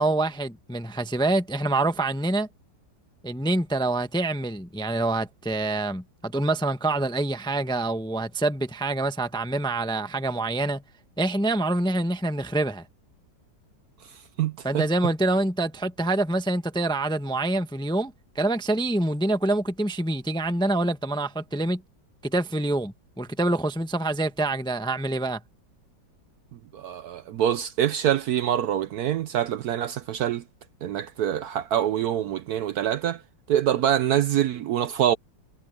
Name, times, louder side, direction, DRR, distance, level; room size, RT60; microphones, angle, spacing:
voice 1, 0.0-2.5 3.2-10.8 11.2-12.8 14.6-21.8 22.2-25.4, right 2 dB, 5° left, 0.6 m, -26 dB
voice 2, 14.4-14.9 26.7-30.4 30.8-33.2 33.5-35.2, right 10 dB, 70° right, 1.0 m, -25 dB
omnidirectional pair, 2.0 m